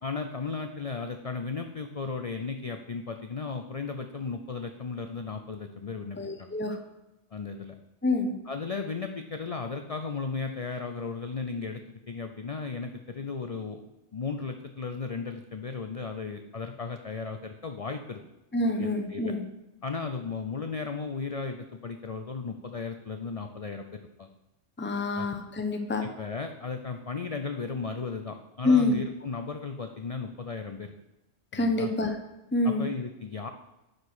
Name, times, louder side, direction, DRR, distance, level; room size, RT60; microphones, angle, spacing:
voice 1, 0.0-6.5 7.3-7.7 8.5-18.2 18.8-19.3 19.8-24.3 24.9-25.3 26.0-30.9 31.5-31.9 32.6-33.5, left 4 dB, 40° left, 6 dB, 0.5 m, -35 dB
voice 2, 6.2-6.8 8.0-8.3 18.5-19.4 24.8-26.0 28.6-29.0 31.5-32.2 32.5-32.9, left 2 dB, 10° left, 5 dB, 0.9 m, -26 dB
10.5 x 5.2 x 6.1 m, 0.99 s
omnidirectional pair, 1.2 m